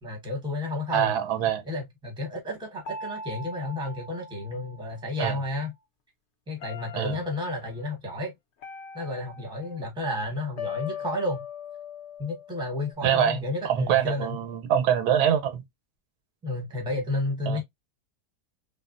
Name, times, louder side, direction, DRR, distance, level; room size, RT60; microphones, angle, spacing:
voice 1, 0.0-1.1 1.7-5.7 6.5-8.3 8.9-11.4 12.2-14.4 16.4-17.6, left 2 dB, 5° right, 0.7 m, -31 dB
voice 2, 0.9-1.6 5.2-5.4 7.0-7.2 13.0-15.6 17.5-17.6, right 9 dB, 90° right, 1.2 m, -24 dB
sound 1, 2.8-5.2 6.6-7.6 8.6-9.9 10.6-12.9, left 5 dB, 65° left, 0.7 m, -40 dB
3.4 x 2.0 x 2.4 m
omnidirectional pair, 1.7 m